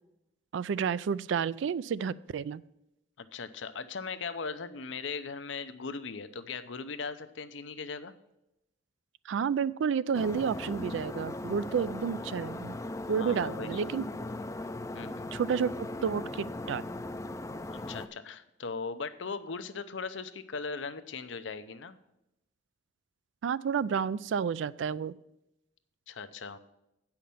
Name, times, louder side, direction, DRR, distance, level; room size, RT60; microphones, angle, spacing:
voice 1, 0.5-2.6 9.3-12.8 13.1-14.0 15.3-15.7 16.0-16.8 23.4-25.2, right 6 dB, 75° right, 18 dB, 0.3 m, -30 dB
voice 2, 3.2-8.1 13.1-13.7 14.9-15.3 17.7-22.0 26.1-26.6, left 5 dB, 75° left, 11 dB, 0.6 m, -39 dB
sound 1, 10.1-18.1, left 2 dB, 15° left, 0.4 m, -38 dB
8.4 x 5.8 x 6.9 m, 0.88 s
head